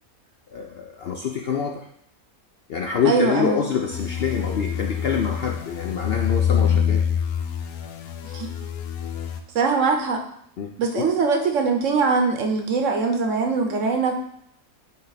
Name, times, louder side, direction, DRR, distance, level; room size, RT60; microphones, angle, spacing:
voice 1, 0.5-1.9 2.7-7.0 10.6-11.1, left 7 dB, 65° left, 2 dB, 0.6 m, -26 dB
voice 2, 3.0-3.6 8.3-8.5 9.5-10.2 10.8-14.1, right 4 dB, 60° right, 4 dB, 1.1 m, -22 dB
sound 1, 3.9-9.4, left 8 dB, 80° left, 1.2 m, -25 dB
9.4 x 3.4 x 4.0 m, 0.70 s
omnidirectional pair, 1.5 m